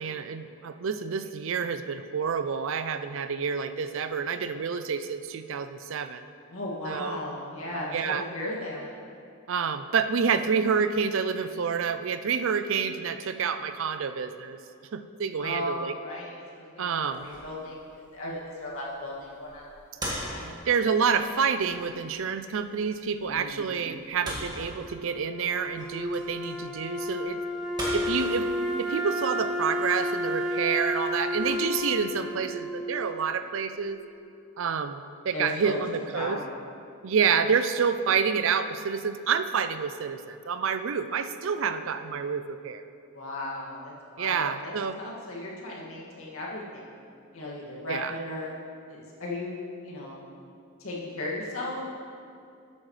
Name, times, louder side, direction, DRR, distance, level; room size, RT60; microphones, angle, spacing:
voice 1, 0.0-6.2 6.9-7.2 7.9-8.2 9.5-14.6 14.9-15.9 16.8-17.3 20.7-27.4 27.9-28.5 28.8-34.0 34.6-36.4 37.0-42.9 44.2-45.0 47.9-48.1, right 6 dB, 65° right, 10 dB, 0.4 m, -28 dB
voice 2, 6.5-8.9 15.4-19.8 20.3-20.6 23.3-23.9 35.3-35.7 36.1-36.4 43.1-46.9 47.3-48.5 48.9-50.3 50.8-51.8, left 1 dB, 75° left, -5 dB, 2.2 m, -36 dB
sound 1, 17.0-32.1, right 1 dB, 20° right, 1.9 m, -42 dB
Wind instrument woodwind instrument, 24.8-33.8, left 1 dB, 5° right, 0.7 m, -32 dB
12.5 x 8.5 x 3.3 m, 2.5 s
head